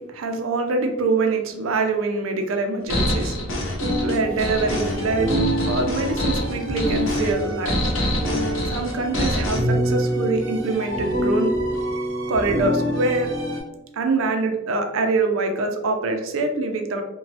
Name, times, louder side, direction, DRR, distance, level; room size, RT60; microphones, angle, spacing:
voice 1, 0.0-3.4 4.0-5.4 5.7-7.9 8.7-11.6 12.3-13.3 13.9-17.0, right 3 dB, 90° right, 5 dB, 0.4 m, -24 dB
sound 1, 2.9-9.6, equal, 80° left, 0.7 m, -26 dB
sound 2, 3.8-13.6, equal, 65° right, 0.8 m, -26 dB
3.0 x 2.2 x 2.7 m, 0.98 s
head